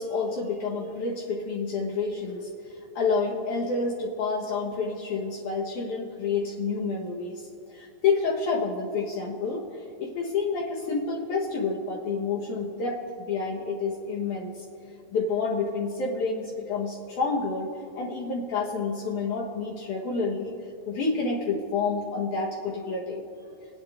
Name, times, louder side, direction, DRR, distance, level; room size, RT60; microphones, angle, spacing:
voice 1, 0.0-14.6 15.1-20.5 20.9-23.2, left 4 dB, 75° left, -3 dB, 1.8 m, -29 dB
24.5 x 10.5 x 2.3 m, 2.8 s
omnidirectional pair, 4.8 m